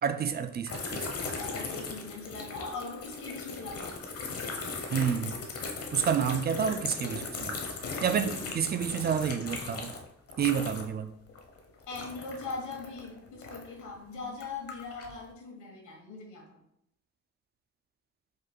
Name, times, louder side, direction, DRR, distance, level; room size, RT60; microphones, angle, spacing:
voice 1, 0.0-1.1 4.9-5.4 5.9-7.6 8.0-9.9 10.4-11.1, right 7 dB, 35° right, 11 dB, 0.4 m, -29 dB
sound 1, 0.7-11.0 11.3-13.8 14.3-15.2, left 4 dB, 50° left, 0.9 m, -38 dB
voice 2, 1.2-3.9 11.9-16.6, left 4 dB, 75° left, 0 dB, 1.6 m, -41 dB
5.0 x 2.3 x 4.4 m, 0.73 s
cardioid pair, 90°, 30 cm